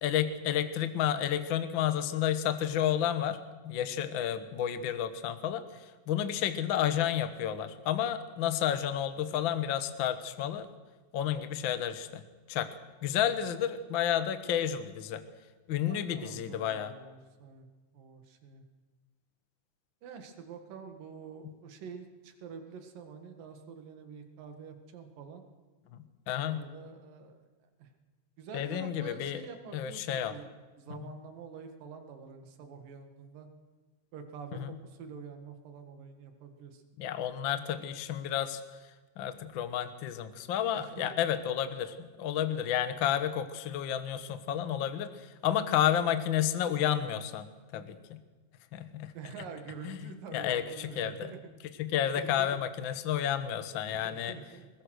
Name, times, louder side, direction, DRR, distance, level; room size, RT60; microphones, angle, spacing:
voice 1, 0.0-3.4 3.6-10.6 11.1-12.2 12.5-12.7 13.0-15.2 15.7-16.9 25.9-26.6 28.5-29.4 29.7-30.3 34.5-34.7 37.0-38.6 39.2-47.5 47.7-48.2 48.7-49.1 49.8-51.3 51.8-54.4, left 10 dB, 65° left, 10 dB, 1.2 m, -31 dB
voice 2, 15.9-17.7 17.9-18.6 20.0-25.4 26.4-27.4 27.8-27.9 28.4-30.5 30.8-33.5 34.1-36.8 40.7-41.1 43.4-43.5 49.1-51.4 52.2-52.6 53.9-54.7, right 6 dB, 90° right, 6 dB, 3.5 m, -47 dB
21.5 x 21.0 x 6.4 m, 1.3 s
omnidirectional pair, 3.8 m